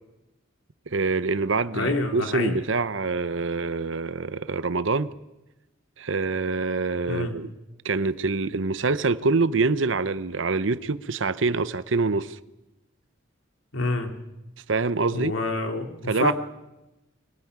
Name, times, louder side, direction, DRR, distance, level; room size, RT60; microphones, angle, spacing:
voice 1, 0.9-5.1 6.0-7.5 7.8-12.4 14.7-15.3 16.1-16.3, right 3 dB, 65° right, 0.8 m, -25 dB
voice 2, 1.7-2.6 7.1-7.3 13.7-14.1 15.1-16.3, left 2 dB, 70° left, 3.0 m, -27 dB
23.5 x 16.5 x 9.5 m
head